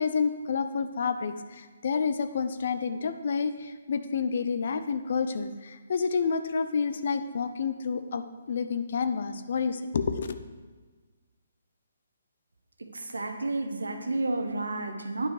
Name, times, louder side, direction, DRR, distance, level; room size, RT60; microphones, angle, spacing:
voice 1, 0.0-10.4, left 5 dB, 55° left, 10 dB, 0.6 m, -29 dB
voice 2, 12.8-15.3, right 2 dB, 85° right, 6 dB, 1.0 m, -31 dB
9.4 x 5.7 x 4.9 m, 1.4 s
figure-of-eight pair, 140°, 0 cm